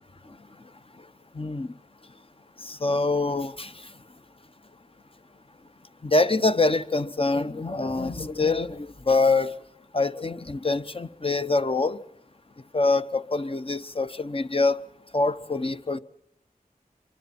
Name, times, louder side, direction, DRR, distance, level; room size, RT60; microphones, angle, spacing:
voice 1, 1.4-1.7 2.6-3.7 6.0-9.5 9.9-12.0 12.7-14.8 15.1-16.0, left 3 dB, 35° left, 1.0 m, -25 dB
28.0 x 24.0 x 4.3 m
wide cardioid pair, 45°, 16 cm